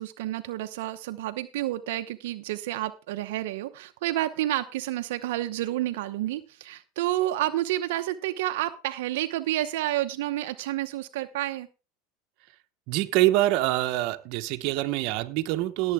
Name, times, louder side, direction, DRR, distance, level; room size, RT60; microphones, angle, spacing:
voice 1, 0.0-11.7, right 15 dB, 75° right, 0.9 m, -30 dB
voice 2, 12.9-15.9, right 16 dB, 60° right, 1.1 m, -25 dB
17.0 x 8.0 x 3.6 m
supercardioid pair, 110°, 0 cm